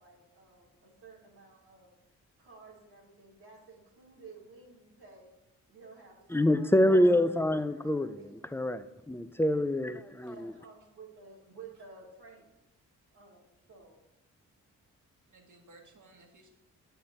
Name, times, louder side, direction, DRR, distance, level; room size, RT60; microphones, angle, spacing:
voice 1, 0.0-1.9 2.4-5.3 5.7-8.5 10.3-12.5 13.1-14.0, right 4 dB, 80° right, -3 dB, 1.8 m, -53 dB
voice 2, 6.3-8.2 8.5-10.5, left 1 dB, 5° left, 12 dB, 0.5 m, -26 dB
voice 3, 10.3-10.6 15.3-16.5, right 2 dB, 50° right, 3 dB, 1.7 m, -58 dB
7.6 x 5.7 x 4.3 m, 0.91 s
hypercardioid pair, 40°, 38 cm